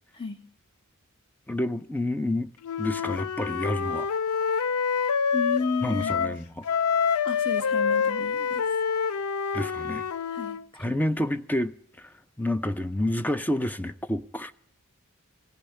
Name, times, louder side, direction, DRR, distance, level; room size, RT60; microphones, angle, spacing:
voice 1, 1.5-2.5 2.8-4.1 5.8-6.4 9.5-10.0 10.8-11.7 12.0-12.1 12.4-14.5, left 1 dB, 10° left, 0.5 m, -28 dB
Wind instrument woodwind instrument, 2.6-6.4 6.6-10.6, left 6 dB, 80° left, 0.5 m, -27 dB
voice 2, 5.3-6.4 7.2-8.7 10.3-10.9 11.2-11.3, left 4 dB, 25° left, 1.5 m, -33 dB
17.0 x 6.8 x 9.8 m
head